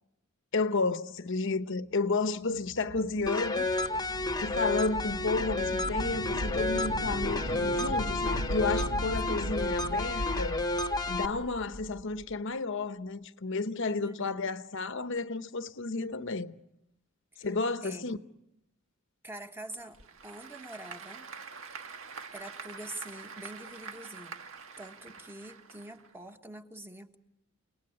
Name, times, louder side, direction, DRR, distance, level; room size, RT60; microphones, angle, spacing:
voice 1, 0.5-3.8 4.4-10.6 11.1-16.6 17.4-18.2, left 3 dB, 65° left, 0.9 m, -32 dB
sound 1, 2.3-12.3, equal, 85° right, 1.3 m, -38 dB
sound 2, 3.3-11.3, left 2 dB, 20° left, 1.1 m, -31 dB
voice 2, 14.0-14.4 17.4-17.5 17.8-18.2 19.2-21.3 22.3-24.4 24.8-27.2, right 1 dB, 10° right, 1.4 m, -45 dB
Applause / Crowd, 19.8-26.4, right 5 dB, 70° right, 1.7 m, -46 dB
30.0 x 19.5 x 9.8 m
head